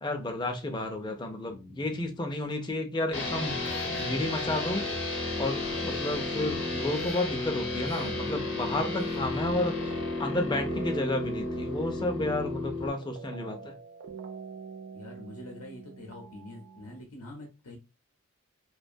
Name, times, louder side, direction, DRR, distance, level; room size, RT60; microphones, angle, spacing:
voice 1, 0.0-3.6 3.9-4.9 5.4-9.7 10.2-13.7, left 2 dB, 20° left, 4 dB, 0.4 m, -31 dB
voice 2, 1.4-2.2 14.9-17.8, left 1 dB, 90° left, 1 dB, 0.6 m, -46 dB
sound 1, 3.1-12.9, left 2 dB, 50° left, 0.7 m, -32 dB
sound 2, 3.6-5.0 5.6-6.0 6.9-7.4 7.8-8.3 9.0-9.5, right 2 dB, 85° right, 0.7 m, -48 dB
sound 3, 7.9-17.0, right 6 dB, 60° right, 0.3 m, -45 dB
2.4 x 2.1 x 2.6 m, 0.30 s
head